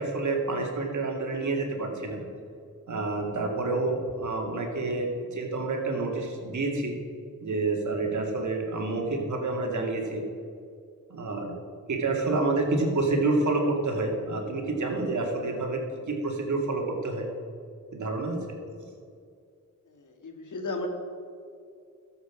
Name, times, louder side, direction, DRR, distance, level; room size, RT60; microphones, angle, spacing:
voice 1, 0.0-2.2 2.9-6.9 7.4-10.2 11.1-11.5 11.9-15.8 16.1-17.3 17.9-18.4, right 3 dB, 60° right, 1 dB, 2.5 m, -28 dB
voice 2, 20.0-20.9, left 2 dB, 65° left, 4 dB, 2.0 m, -34 dB
13.0 x 7.9 x 6.2 m, 2.4 s
cardioid pair, 70°, 33 cm